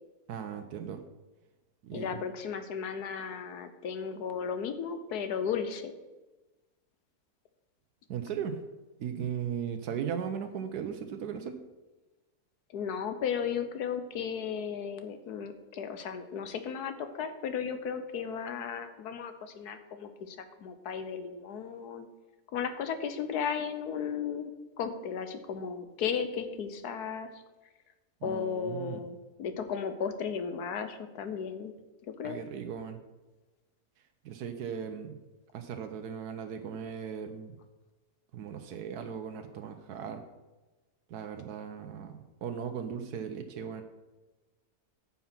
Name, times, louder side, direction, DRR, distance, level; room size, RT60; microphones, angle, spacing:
voice 1, 0.3-1.0 1.8-2.1 8.1-8.6 9.0-11.5 28.2-29.0 32.2-33.0 34.2-35.1 35.5-37.5 38.3-40.2 41.1-43.8, right 7 dB, 85° right, 7 dB, 1.3 m, -37 dB
voice 2, 1.9-5.9 12.7-22.1 22.5-24.5 24.8-27.4 28.2-31.7 32.1-32.4, left 7 dB, 80° left, 9 dB, 1.4 m, -35 dB
9.5 x 5.8 x 5.9 m, 1.1 s
omnidirectional pair, 1.6 m